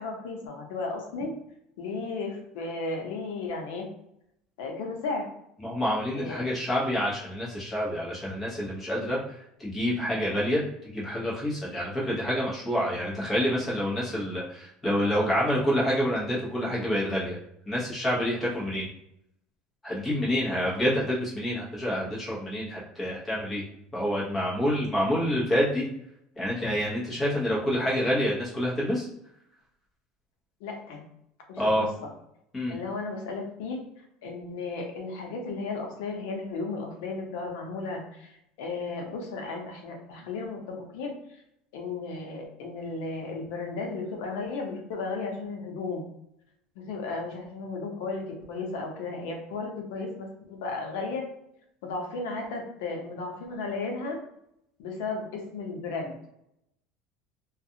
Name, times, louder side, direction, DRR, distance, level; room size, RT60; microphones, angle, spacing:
voice 1, 0.0-1.3 1.8-3.9 4.6-5.3 6.1-6.5 30.6-31.0 31.5-32.1 32.7-33.8 34.2-41.4 41.7-46.0 46.8-51.3 51.8-54.2 54.8-56.2, left 3 dB, 75° left, 1 dB, 0.7 m, -34 dB
voice 2, 5.6-9.2 9.6-10.6 10.9-17.4 17.7-18.9 19.8-23.6 23.9-25.8 26.4-29.1 31.6-31.8 32.5-32.7, equal, 15° left, -6 dB, 1.0 m, -27 dB
2.4 x 2.3 x 2.8 m, 0.78 s
cardioid pair, 155°, 0 cm